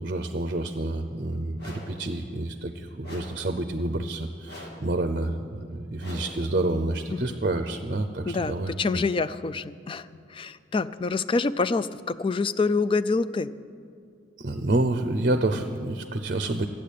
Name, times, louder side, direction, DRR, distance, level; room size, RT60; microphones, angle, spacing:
voice 1, 0.0-9.0 14.4-16.7, right 2 dB, 50° right, 9 dB, 0.6 m, -28 dB
sound 1, 1.6-2.0 3.0-3.5 4.5-4.9 6.0-6.5, left 1 dB, 60° left, 2.4 m, -43 dB
voice 2, 8.3-10.1 10.3-13.5, left 4 dB, 30° left, 14 dB, 0.3 m, -26 dB
13.0 x 8.6 x 8.4 m, 2.4 s
head